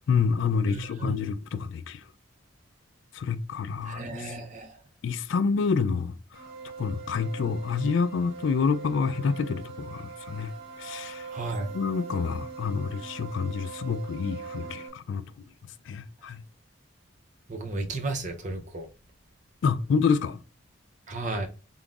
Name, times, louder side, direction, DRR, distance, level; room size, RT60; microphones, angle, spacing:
voice 1, 0.1-2.0 3.1-4.3 5.0-6.2 6.8-10.5 10.8-11.3 11.7-15.3 15.9-16.4 19.6-20.4, left 5 dB, 70° left, 0.3 m, -28 dB
voice 2, 0.7-1.2 3.9-4.8 11.3-11.7 17.5-18.9 21.1-21.5, right 2 dB, 40° right, 0.6 m, -33 dB
sound 1, 6.3-14.9, right 5 dB, 75° right, 1.2 m, -42 dB
3.7 x 3.7 x 2.4 m
head